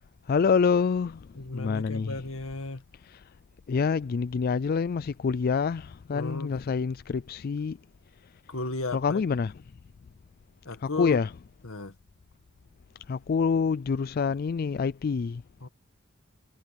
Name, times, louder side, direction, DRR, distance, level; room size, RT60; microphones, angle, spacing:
voice 1, 0.3-2.2 3.1-3.2 3.7-7.8 8.9-9.5 10.8-11.3 13.1-15.4, left 5 dB, 45° left, 0.3 m, -27 dB
voice 2, 1.4-2.8 6.1-6.5 8.5-9.2 10.6-11.2 11.6-11.9 15.6-15.7, left 2 dB, 75° left, 1.9 m, -35 dB
head